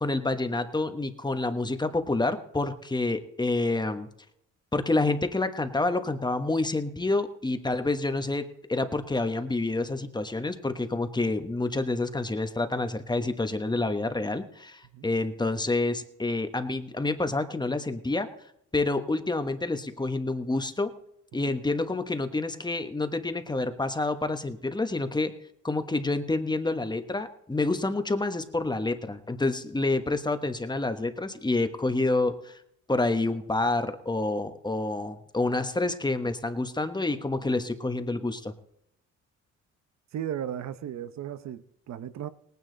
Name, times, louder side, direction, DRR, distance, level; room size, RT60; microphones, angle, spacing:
voice 1, 0.0-4.1 4.7-18.3 18.7-20.9 21.3-25.3 25.6-32.5 32.9-38.5, left 2 dB, 15° left, 1.2 m, -28 dB
voice 2, 40.1-42.3, right 10 dB, 65° right, 0.9 m, -35 dB
18.5 x 9.4 x 4.0 m
cardioid pair, 90°, 30 cm